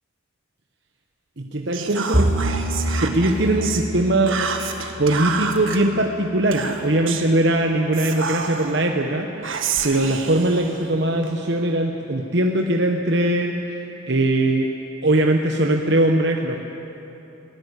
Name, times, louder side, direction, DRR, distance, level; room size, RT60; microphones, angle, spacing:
voice 1, 1.4-2.3 3.0-4.4 5.0-9.5 9.8-14.7 15.0-16.6, right 1 dB, 55° right, 2 dB, 1.0 m, -21 dB
Whispering, 1.7-3.9 4.3-5.8 6.5-7.3 7.9-8.8 9.4-11.3, right 6 dB, 80° right, 1.6 m, -29 dB
Bowed string instrument, 2.1-5.6, right 1 dB, 40° right, 2.7 m, -26 dB
22.0 x 17.0 x 8.2 m, 3.0 s
head